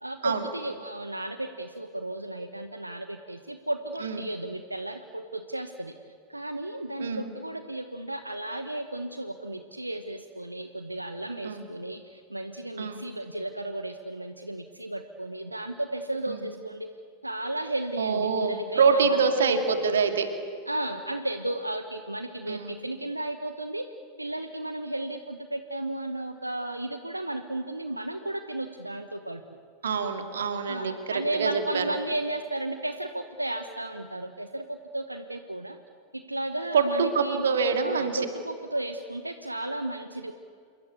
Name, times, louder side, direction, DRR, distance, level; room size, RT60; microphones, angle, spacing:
voice 1, 0.0-5.9 6.3-16.9 17.2-19.6 20.7-23.9 24.2-29.4 30.7-35.8 36.1-37.4 37.8-40.3, right 1 dB, 85° right, 8 dB, 1.1 m, -34 dB
voice 2, 18.0-20.3 22.5-22.8 29.8-31.9 36.7-38.2, right 5 dB, 65° right, 6 dB, 2.4 m, -25 dB
28.0 x 22.5 x 8.3 m, 2.3 s
figure-of-eight pair, 90°, 0 cm